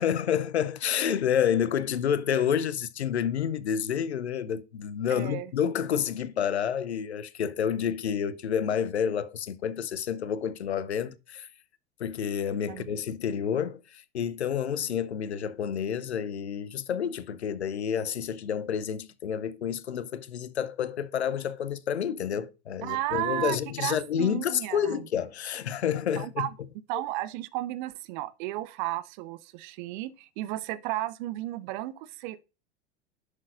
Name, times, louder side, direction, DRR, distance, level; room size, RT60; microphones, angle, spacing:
voice 1, 0.0-11.5 12.0-26.5, left 8 dB, 75° left, 0.7 m, -29 dB
voice 2, 5.1-5.5 12.7-13.0 22.8-25.0 26.2-26.5 26.9-32.4, right 15 dB, 45° right, 0.7 m, -33 dB
11.0 x 6.3 x 2.5 m
figure-of-eight pair, 85°, 33 cm